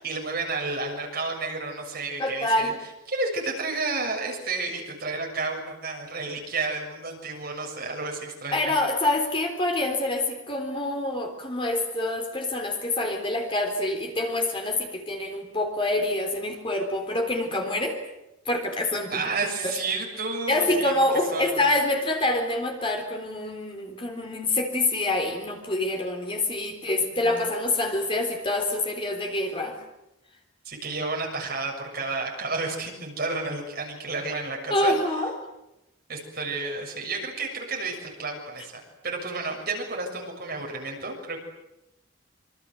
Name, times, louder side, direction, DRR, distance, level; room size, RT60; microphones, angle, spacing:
voice 1, 0.0-2.7 3.1-8.7 19.1-20.9 21.3-21.6 26.9-27.4 30.7-35.0 36.1-41.4, right 3 dB, 50° right, 1 dB, 6.9 m, -31 dB
voice 2, 2.2-2.7 8.5-18.0 18.5-19.2 19.6-19.7 20.5-29.8 34.7-35.3, left 2 dB, 25° left, 3 dB, 3.8 m, -26 dB
27.0 x 25.0 x 7.9 m, 0.91 s
head